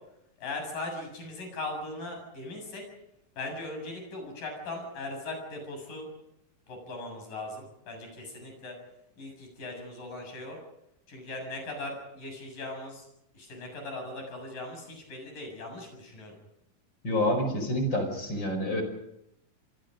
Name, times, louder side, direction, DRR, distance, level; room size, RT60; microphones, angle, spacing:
voice 1, 0.4-2.8 3.4-6.1 6.7-8.8 9.2-10.6 11.1-13.1 13.3-16.3, left 2 dB, 65° left, 3 dB, 8.9 m, -39 dB
voice 2, 17.0-18.8, left 1 dB, 30° left, 6 dB, 5.7 m, -28 dB
28.0 x 24.5 x 5.3 m, 0.81 s
omnidirectional pair, 4.1 m